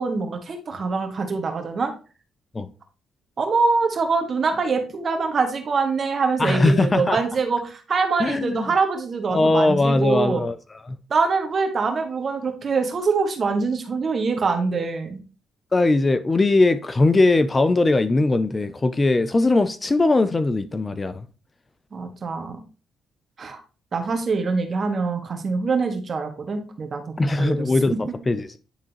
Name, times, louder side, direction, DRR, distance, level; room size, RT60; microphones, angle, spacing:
voice 1, 0.0-1.9 3.4-10.4 11.1-15.2 21.9-22.6 23.4-23.6 23.9-27.0 27.4-27.6, right 4 dB, 45° right, 1.6 m, -24 dB
voice 2, 6.4-7.2 8.2-8.7 9.3-11.0 15.7-21.3 27.2-28.6, left 2 dB, 25° left, 0.5 m, -20 dB
10.0 x 3.6 x 2.9 m
cardioid pair, 90°, 0 cm